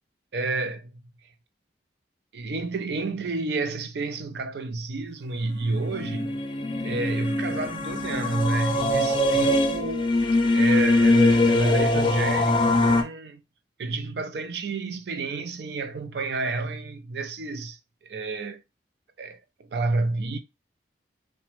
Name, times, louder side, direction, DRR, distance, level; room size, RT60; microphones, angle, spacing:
voice 1, 0.3-1.0 2.3-6.4 6.8-13.4 13.8-17.8 18.0-18.6 19.2-20.4, right 3 dB, 65° right, 0.4 m, -30 dB
sound 1, 5.8-13.0, left 2 dB, 30° left, 0.4 m, -22 dB
2.9 x 2.2 x 3.0 m
head